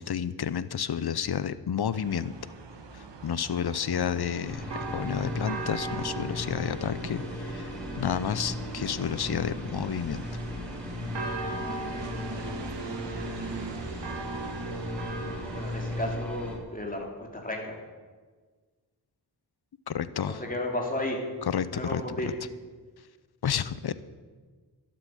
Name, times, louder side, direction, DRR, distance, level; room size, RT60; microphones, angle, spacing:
voice 1, 0.0-2.3 2.9-4.6 4.9-10.2 19.9-20.4 21.4-22.3 23.4-23.9, left 8 dB, 65° left, 15 dB, 0.7 m, -31 dB
sound 1, 1.9-16.2, right 3 dB, 85° right, 1.3 m, -39 dB
sound 2, 4.4-16.6, left 1 dB, 5° left, 2.8 m, -37 dB
voice 2, 15.5-17.7 20.3-21.2 21.7-22.3, left 1 dB, 20° left, 0 dB, 3.0 m, -33 dB
12.5 x 7.8 x 7.8 m, 1.4 s
wide cardioid pair, 55°, 42 cm